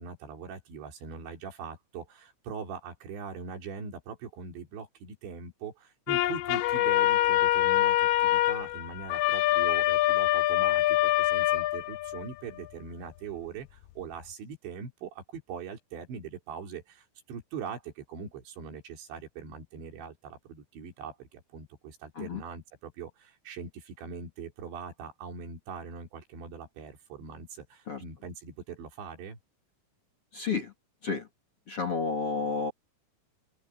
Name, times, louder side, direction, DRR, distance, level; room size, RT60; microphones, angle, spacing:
voice 1, 0.0-29.4, right 6 dB, 60° right, 5.9 m, -42 dB
sound 1, 6.1-12.3, left 15 dB, 80° left, 3.5 m, -25 dB
voice 2, 30.3-30.7 31.0-31.3 31.7-32.7, left 4 dB, 35° left, 2.6 m, -31 dB
open air
omnidirectional pair, 5.9 m